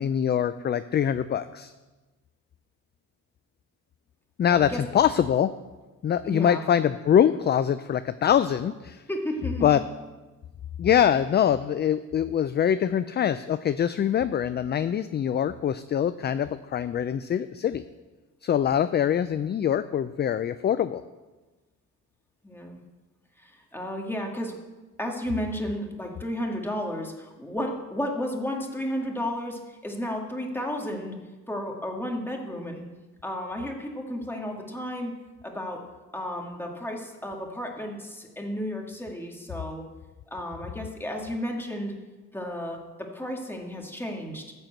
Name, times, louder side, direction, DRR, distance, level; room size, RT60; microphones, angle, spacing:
voice 1, 0.0-1.7 4.4-5.5 6.0-9.0 9.6-9.8 10.8-17.8 18.4-21.0, left 9 dB, 35° left, 12 dB, 0.4 m, -24 dB
voice 2, 4.5-4.8 6.2-6.6 9.1-9.8 22.4-22.8 23.4-24.6 25.0-31.2 31.5-32.8 33.2-35.8 36.1-39.8 40.3-42.0 42.3-44.5, equal, 5° left, 1 dB, 2.0 m, -33 dB
13.0 x 4.5 x 7.8 m, 1.2 s
cardioid pair, 90°, 30 cm